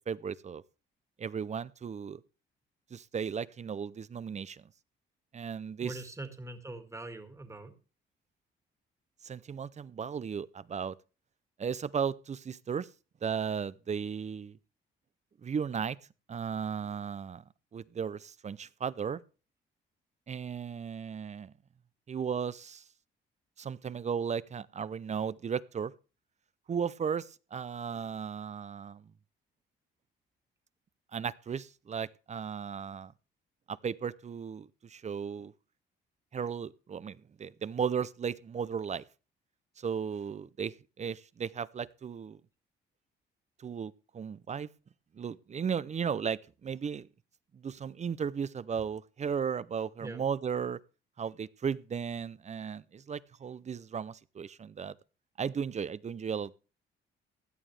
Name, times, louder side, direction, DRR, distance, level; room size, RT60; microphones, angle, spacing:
voice 1, 0.1-0.6 1.2-2.2 2.9-4.7 5.3-6.0 9.2-11.0 11.6-12.9 13.2-14.6 15.4-16.0 16.3-17.4 17.7-19.2 20.3-21.5 22.1-22.8 23.6-25.9 26.7-29.1 31.1-33.1 33.7-35.5 36.3-39.0 39.8-42.4 43.6-44.7 45.1-47.1 47.5-50.8 51.2-54.9 55.4-56.6, right 7 dB, 35° right, 0.6 m, -35 dB
voice 2, 5.8-7.7 50.0-50.3, right 2 dB, 15° right, 2.0 m, -43 dB
16.5 x 11.0 x 3.3 m
cardioid pair, 90°, 20 cm